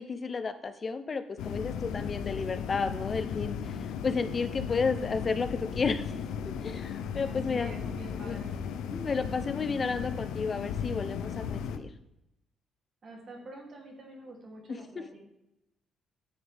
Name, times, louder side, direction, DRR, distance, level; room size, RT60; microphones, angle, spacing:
voice 1, 0.0-3.6 3.8-6.0 6.6-7.7 8.2-8.4 8.8-11.9 14.7-14.8, left 4 dB, 40° left, 10 dB, 0.6 m, -32 dB
sound 1, 1.4-11.8, left 7 dB, 90° left, 0.6 m, -36 dB
voice 2, 7.2-8.5 13.0-15.2, right 1 dB, 50° right, 0 dB, 2.8 m, -46 dB
10.5 x 6.4 x 3.5 m, 0.86 s
cardioid pair, 90°, 0 cm